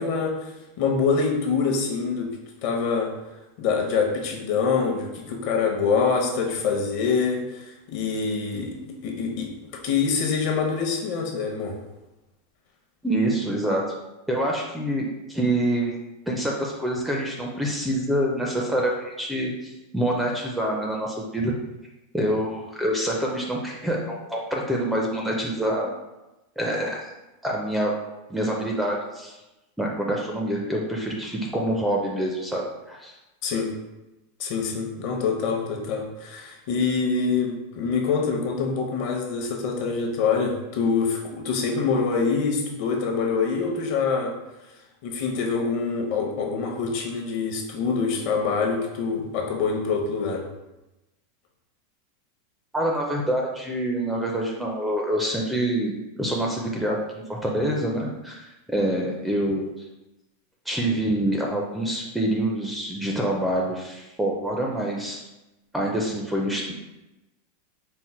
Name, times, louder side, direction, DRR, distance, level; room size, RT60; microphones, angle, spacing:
voice 1, 0.0-2.3 2.6-3.1 3.6-8.7 9.0-9.5 9.8-11.8 33.4-33.7 34.4-44.3 45.0-50.4, left 5 dB, 45° left, 1 dB, 0.7 m, -25 dB
voice 2, 13.0-13.8 14.3-15.9 16.3-21.5 22.1-25.9 26.6-27.0 27.4-27.9 28.3-29.3 29.8-33.2 52.7-57.0 57.3-59.7 60.7-65.2 65.7-66.7, right 1 dB, 5° right, -1 dB, 0.4 m, -26 dB
4.4 x 2.1 x 4.2 m, 1.0 s
supercardioid pair, 165°, 0 cm